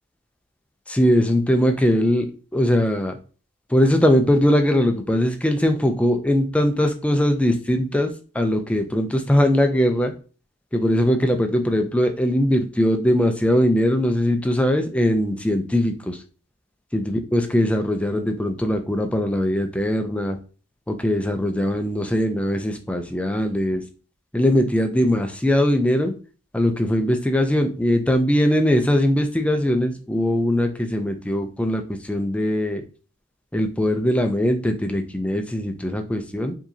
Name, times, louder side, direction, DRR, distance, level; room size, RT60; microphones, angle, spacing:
voice 1, 0.9-2.3 2.5-3.2 3.7-10.1 10.7-16.2 16.9-20.4 20.9-23.8 24.3-26.1 26.5-32.8 33.5-36.5, equal, 5° left, 6 dB, 0.3 m, -21 dB
4.8 x 2.8 x 2.7 m, 0.37 s
head